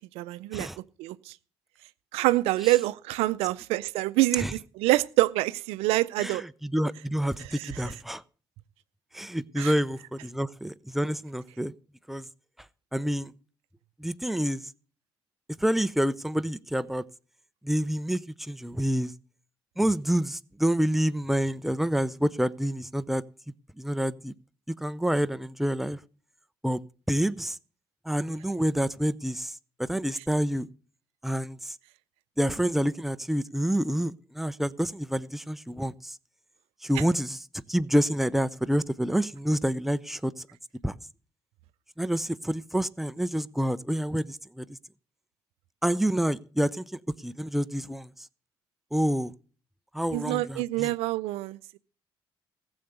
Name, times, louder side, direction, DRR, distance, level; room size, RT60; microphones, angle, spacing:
voice 1, 0.1-0.7 1.0-1.3 2.1-6.4 7.5-7.7 9.6-9.7 50.1-51.8, right 18 dB, 85° right, 0.5 m, -26 dB
voice 2, 6.2-8.2 9.1-11.7 12.1-12.3 12.9-13.3 14.0-14.6 15.6-17.0 17.6-19.1 19.8-23.2 23.8-24.3 24.8-26.0 26.6-27.6 28.1-30.7 31.2-31.8 32.4-36.2 36.8-40.3 40.8-41.0 42.0-44.8 45.8-48.1 48.9-49.3 49.9-51.0, equal, ahead, 0.6 m, -28 dB
15.0 x 7.0 x 6.6 m
supercardioid pair, 65°, 10 cm